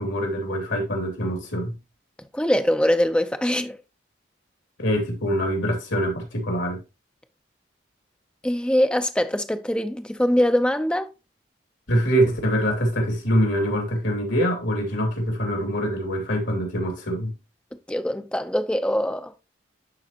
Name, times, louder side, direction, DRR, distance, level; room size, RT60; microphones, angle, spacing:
voice 1, 0.0-1.8 4.8-6.8 11.9-17.3, equal, 80° left, 2.6 m, -24 dB
voice 2, 2.3-3.8 8.4-11.1 17.9-19.3, equal, 5° left, 0.5 m, -22 dB
11.5 x 4.0 x 2.8 m
head